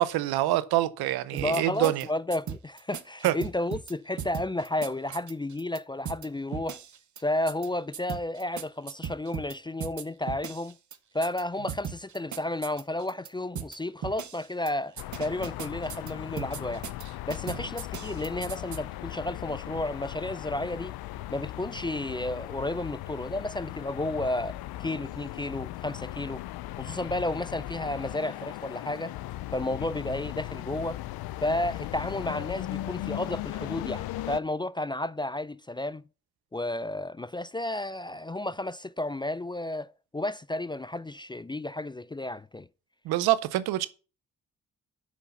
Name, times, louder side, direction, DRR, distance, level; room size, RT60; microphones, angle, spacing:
voice 1, 0.0-2.1 3.2-3.3 43.0-43.9, right 15 dB, 85° right, 0.7 m, -25 dB
voice 2, 1.3-6.8 7.2-10.8 11.1-16.9 17.3-20.9 21.3-26.4 26.8-29.1 29.5-31.0 31.4-36.0 36.5-42.7, left 1 dB, 15° left, 0.3 m, -32 dB
sound 1, 1.4-2.0 2.3-3.9 4.2-5.8 6.1-6.3 6.5-7.2 7.5-7.7 7.9-9.5 9.8-11.0 11.2-11.4 11.7-13.3 13.6-13.8 14.0-14.7 15.0-16.1 16.4-17.0 17.3-18.8, right 8 dB, 55° right, 0.9 m, -37 dB
sound 2, 15.0-34.4, left 15 dB, 80° left, 0.5 m, -38 dB
6.2 x 5.7 x 6.9 m
supercardioid pair, 45°, 37 cm